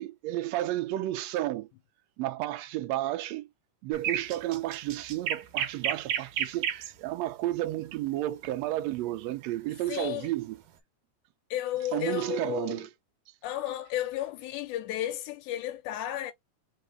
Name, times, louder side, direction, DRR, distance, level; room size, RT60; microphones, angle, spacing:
voice 1, 0.0-1.7 2.2-3.5 3.8-10.6 11.9-12.9, right 15 dB, 85° right, 1.5 m, -32 dB
sound 1, 3.9-6.9 9.0-9.2, right 9 dB, 70° right, 2.0 m, -31 dB
voice 2, 9.9-10.3 11.5-12.9 13.4-16.3, left 13 dB, 80° left, 2.1 m, -33 dB
4.7 x 3.1 x 3.2 m
omnidirectional pair, 3.5 m